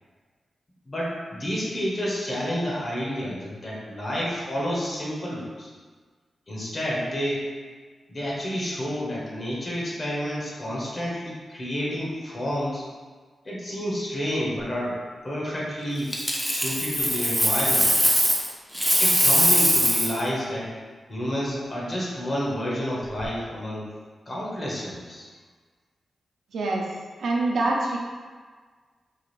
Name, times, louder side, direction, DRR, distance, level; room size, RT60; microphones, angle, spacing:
voice 1, 0.9-5.7 6.5-7.5 8.1-12.8 13.4-15.0 15.2-16.1 16.4-18.1 19.0-20.8 21.1-23.9 24.3-25.3, equal, 40° left, -4 dB, 1.1 m, -30 dB
Coin (dropping), 16.1-18.5 18.7-20.2 23.0-23.2, equal, 5° left, 0.5 m, -21 dB
voice 2, 26.5-26.9 27.2-28.0, right 2 dB, 85° right, -2 dB, 0.6 m, -25 dB
4.6 x 2.5 x 3.2 m, 1.5 s
wide cardioid pair, 110°, 0 cm